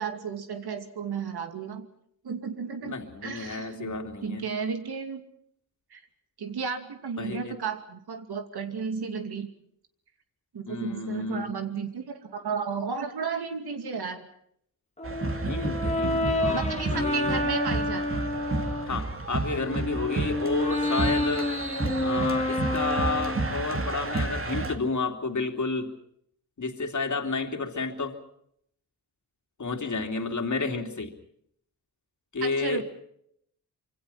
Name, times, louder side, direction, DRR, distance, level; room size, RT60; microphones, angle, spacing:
voice 1, 0.0-1.9 2.2-3.0 3.2-5.2 5.9-6.0 6.4-9.5 10.5-14.3 16.5-18.3 32.4-32.8, right 6 dB, 85° right, 7 dB, 2.6 m, -33 dB
voice 2, 2.8-4.5 7.2-7.6 10.7-11.5 15.4-16.6 16.9-17.4 18.8-21.5 22.0-25.9 26.6-28.2 29.6-31.1 32.3-32.8, left 4 dB, 50° left, 3 dB, 2.9 m, -31 dB
Brass instrument, 15.0-19.0 19.5-23.6, left 1 dB, 20° left, 2.1 m, -29 dB
sound 1, 15.0-24.8, right 2 dB, 35° right, 2.4 m, -31 dB
26.0 x 24.5 x 5.7 m, 0.70 s
wide cardioid pair, 95°, 38 cm